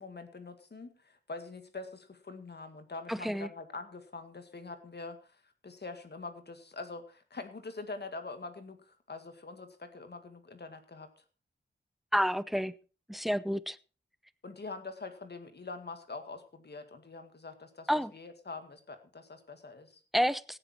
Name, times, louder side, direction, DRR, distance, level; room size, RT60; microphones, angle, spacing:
voice 1, 0.0-11.1 14.4-20.0, left 3 dB, 60° left, 2.1 m, -44 dB
voice 2, 3.1-3.5 12.1-12.7 13.1-13.8 17.9-18.1 20.1-20.6, equal, ahead, 0.7 m, -29 dB
17.0 x 9.2 x 4.5 m
wide cardioid pair, 70°, 20 cm